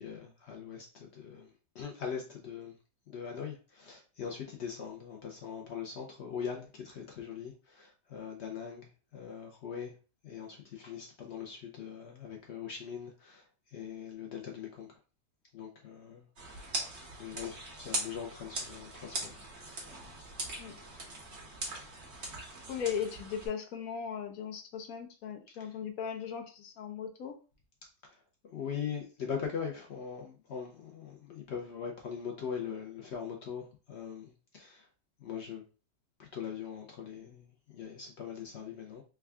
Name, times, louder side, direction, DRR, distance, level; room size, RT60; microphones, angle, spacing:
voice 1, 0.0-1.5 1.7-2.7 3.1-9.9 10.2-14.9 15.5-16.7 17.2-19.4 25.6-25.7 28.1-28.2 28.4-34.9 35.2-35.6 36.2-37.5 37.7-39.0, left 7 dB, 80° left, 0.5 m, -41 dB
sound 1, 16.4-23.5, right 2 dB, 45° right, 1.2 m, -41 dB
voice 2, 22.7-27.4, left 7 dB, 65° left, 0.9 m, -38 dB
3.5 x 2.3 x 3.4 m
omnidirectional pair, 1.9 m